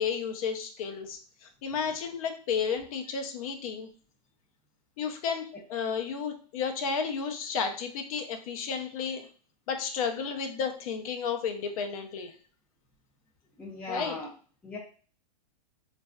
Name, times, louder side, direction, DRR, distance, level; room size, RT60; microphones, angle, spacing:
voice 1, 0.0-3.9 5.0-5.4 5.7-9.3 9.7-12.3 13.9-14.1, left 6 dB, 60° left, 6 dB, 0.7 m, -32 dB
voice 2, 13.6-14.3 14.6-14.8, left 2 dB, 5° left, -3 dB, 0.4 m, -38 dB
3.2 x 2.5 x 2.3 m, 0.41 s
hypercardioid pair, 140°, 21 cm